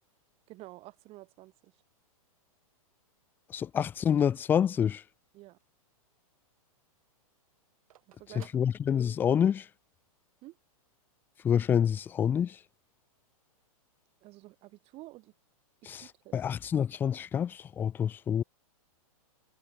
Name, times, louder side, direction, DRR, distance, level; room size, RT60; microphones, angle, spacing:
voice 1, 0.5-1.8 5.3-5.6 8.1-8.6 10.4-10.6 14.2-15.3 16.0-16.5, right 19 dB, 30° right, 6.3 m, -50 dB
Telephone, 2.6-5.9 6.3-6.4 6.6-9.5, right 12 dB, 65° right, 6.1 m, -62 dB
voice 2, 3.5-5.0 8.5-9.7 11.4-12.6 15.9-16.0 16.3-18.4, left 8 dB, 10° left, 0.3 m, -27 dB
hypercardioid pair, 145°, 19 cm